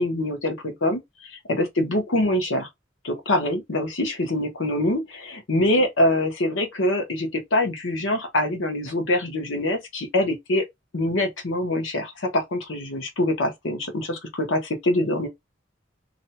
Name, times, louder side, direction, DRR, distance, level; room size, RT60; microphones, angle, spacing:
voice 1, 0.0-2.7 3.0-10.6 10.9-15.3, left 1 dB, 70° left, 0.9 m, -24 dB
2.6 x 2.1 x 2.8 m
head